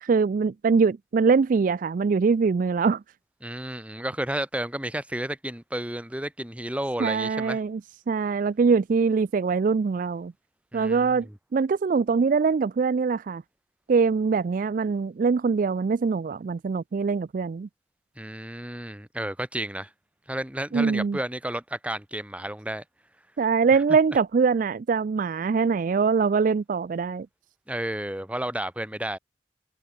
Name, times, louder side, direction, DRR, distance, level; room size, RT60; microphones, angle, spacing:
voice 1, 0.0-3.0 7.0-7.8 8.1-10.3 10.7-13.4 13.9-17.7 20.7-21.2 23.4-27.3, right 5 dB, 45° right, 0.3 m, -23 dB
voice 2, 3.4-7.6 10.7-11.2 18.2-19.9 20.3-22.8 27.7-29.2, right 1 dB, 5° right, 1.6 m, -32 dB
head